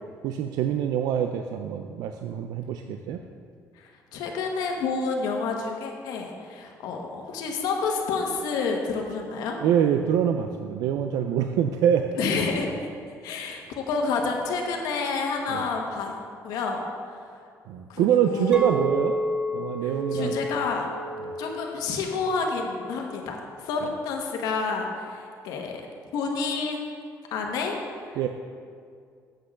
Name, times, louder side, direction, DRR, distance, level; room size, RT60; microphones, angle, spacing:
voice 1, 0.2-3.2 9.6-12.1 15.5-15.7 17.7-19.2 19.5-20.4 21.2-21.3 28.2-28.3, right 9 dB, 80° right, 6 dB, 0.4 m, -25 dB
voice 2, 4.1-9.6 12.2-12.7 13.2-16.1 16.4-16.8 17.9-18.6 20.1-20.9 21.4-23.4 23.6-25.7 26.1-26.9 27.3-27.8, left 4 dB, 85° left, 2 dB, 1.2 m, -29 dB
Chink clink, 18.5-22.9 23.2-23.6, equal, 15° right, 0.4 m, -32 dB
7.9 x 6.1 x 6.4 m, 2.3 s
cardioid pair, 150°, 6 cm